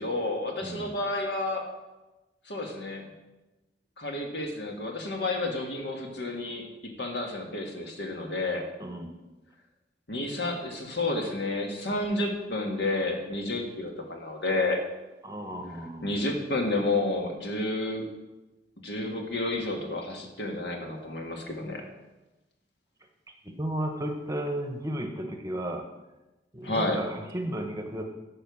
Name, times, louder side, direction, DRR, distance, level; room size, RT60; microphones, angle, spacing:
voice 1, 0.0-1.6 2.5-3.0 4.0-8.6 10.1-14.8 16.0-18.1 18.8-21.8 26.6-27.0, left 2 dB, 70° left, 2 dB, 1.8 m, -30 dB
voice 2, 0.6-0.9 8.8-9.1 15.2-16.1 23.3-25.8 26.5-28.0, right 1 dB, 20° right, 5 dB, 0.9 m, -34 dB
10.0 x 5.6 x 7.0 m, 1.1 s
head